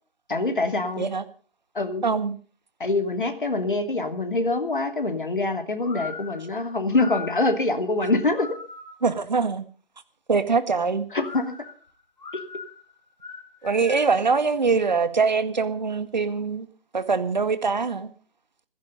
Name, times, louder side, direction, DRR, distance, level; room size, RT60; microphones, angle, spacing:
voice 1, 0.3-1.0 1.7-2.0 2.8-8.6 11.1-11.5, left 2 dB, 60° left, 7 dB, 2.9 m, -25 dB
voice 2, 2.0-2.4 9.0-9.6 10.3-11.1 13.6-16.7 16.9-18.1, right 4 dB, 50° right, 12 dB, 1.8 m, -23 dB
Wild Western Whistling Duel, 5.8-9.1 11.1-14.2, left 4 dB, 45° left, 6.1 m, -40 dB
16.0 x 14.5 x 5.4 m, 0.40 s
figure-of-eight pair, 155°, 29 cm